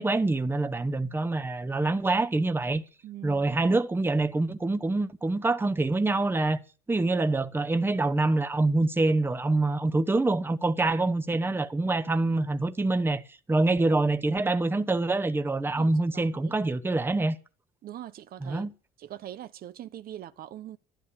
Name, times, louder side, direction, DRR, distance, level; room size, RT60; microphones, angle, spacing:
voice 1, 0.0-2.8 3.2-6.6 6.9-13.2 13.5-17.4 18.4-18.7, right 2 dB, 15° right, 1.0 m, -25 dB
voice 2, 3.0-3.8 15.7-16.6 17.8-18.7 19.0-20.8, right 12 dB, 60° right, 1.0 m, -43 dB
12.0 x 11.5 x 8.5 m
cardioid pair, 110°, 17 cm